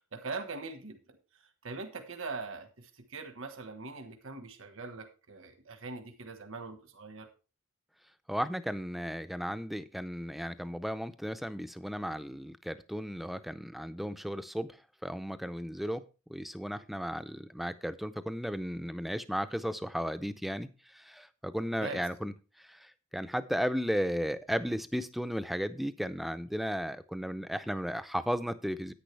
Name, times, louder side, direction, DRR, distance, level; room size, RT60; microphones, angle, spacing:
voice 1, 0.1-1.0 1.6-7.3 21.8-22.0, right 3 dB, 70° right, 6 dB, 1.4 m, -42 dB
voice 2, 8.3-14.8 15.0-16.0 16.3-28.9, equal, ahead, 11 dB, 0.5 m, -35 dB
10.5 x 9.1 x 3.3 m, 0.33 s
head